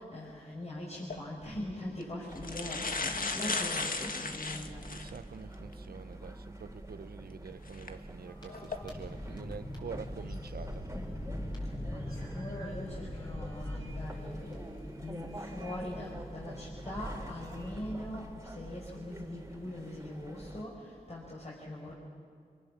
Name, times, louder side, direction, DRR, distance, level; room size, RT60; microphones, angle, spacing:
voice 1, 0.0-4.9 11.9-21.9, left 1 dB, 45° left, 5.9 m, -42 dB
sound 1, 1.0-1.2 2.0-2.1 2.4-5.2 5.7-5.8 7.7-7.9 8.5-8.8, left 4 dB, 60° left, 1.6 m, -35 dB
sound 2, 2.3-20.6, right 1 dB, 15° right, 3.5 m, -46 dB
voice 2, 4.5-10.9, right 6 dB, 75° right, 0.7 m, -47 dB
sound 3, 8.2-18.1, left 1 dB, 25° left, 6.5 m, -43 dB
26.5 x 23.5 x 7.4 m
cardioid pair, 55°, 16 cm